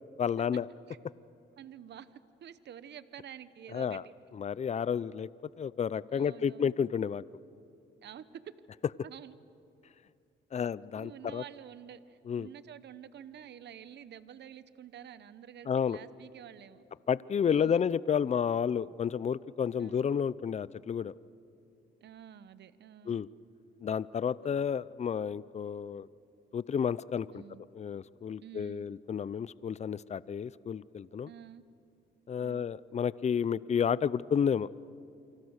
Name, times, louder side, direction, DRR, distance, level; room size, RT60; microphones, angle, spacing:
voice 1, 0.2-0.7 3.7-4.0 4.4-5.3 5.6-7.2 10.5-11.4 12.3-12.5 15.7-16.0 17.1-21.1 23.1-23.3 23.8-26.1 26.5-27.4 27.7-31.3 32.3-34.7, left 7 dB, 35° left, 20 dB, 0.5 m, -31 dB
voice 2, 1.6-4.0 6.1-6.7 8.0-8.4 9.0-9.4 10.9-16.8 17.5-17.8 19.8-20.2 22.0-23.2 24.4-24.6 27.3-27.6 28.4-28.9 31.2-31.6 32.4-32.7, right 9 dB, 60° right, 15 dB, 1.0 m, -49 dB
28.5 x 25.0 x 6.5 m, 2.6 s
cardioid pair, 90°, 20 cm